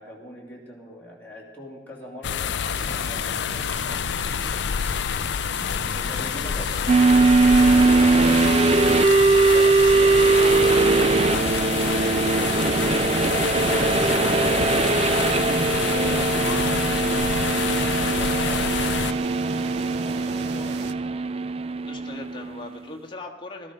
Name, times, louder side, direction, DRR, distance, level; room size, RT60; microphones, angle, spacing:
voice 1, 0.0-4.6 5.9-6.7 13.7-19.2 19.9-20.9, left 1 dB, 10° left, -5 dB, 2.9 m, -41 dB
sound 1, 2.2-19.1, left 8 dB, 75° left, 0.4 m, -27 dB
sound 2, 2.6-20.9, right 4 dB, 65° right, 0.7 m, -38 dB
voice 2, 6.0-6.9 7.3-11.4 21.8-23.7, left 2 dB, 30° left, 1 dB, 1.6 m, -40 dB
sound 3, 6.9-22.6, right 3 dB, 35° right, 0.4 m, -20 dB
17.5 x 13.5 x 5.0 m, 1.2 s
head